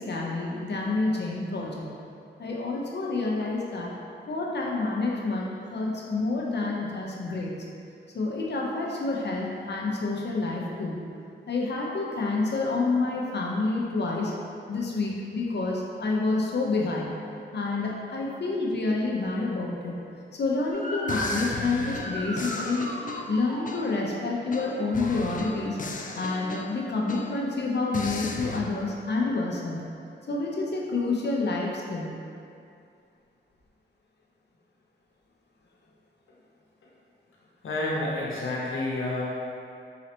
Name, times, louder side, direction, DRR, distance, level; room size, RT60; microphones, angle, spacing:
voice 1, 0.0-1.9 2.4-3.9 4.3-7.6 8.1-11.1 11.5-14.3 14.7-17.1 17.5-20.1 20.3-22.9 23.3-25.8 26.1-29.9 30.3-32.1, left 3 dB, 60° left, -3 dB, 0.8 m, -28 dB
sound 1, 20.5-20.7 21.1-24.1 24.5-27.6 27.9-28.6, left 3 dB, 40° left, 0.4 m, -37 dB
Motor vehicle (road) / Siren, 20.7-26.0, equal, 30° right, 1.2 m, -37 dB
voice 2, 37.6-39.2, left 2 dB, 85° left, -5 dB, 1.0 m, -29 dB
4.2 x 3.9 x 2.9 m, 2.5 s
cardioid pair, 70°, 20 cm